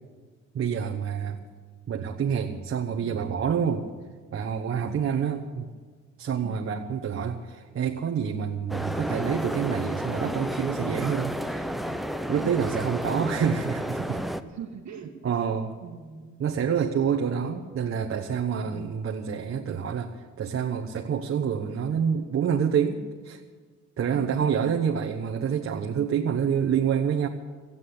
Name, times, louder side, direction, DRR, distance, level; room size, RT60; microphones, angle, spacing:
voice 1, 0.5-1.4 1.9-3.8 4.3-5.7 6.2-11.7 12.3-14.2 15.2-15.7 16.4-23.4 24.0-27.3, right 7 dB, 45° right, 2 dB, 1.1 m, -27 dB
sound 1, 8.7-14.4, equal, ahead, 0.7 m, -31 dB
voice 2, 14.5-15.1 15.8-16.4, right 7 dB, 70° right, 1 dB, 1.6 m, -42 dB
15.5 x 9.6 x 8.5 m, 1.5 s
cardioid pair, 90°, 30 cm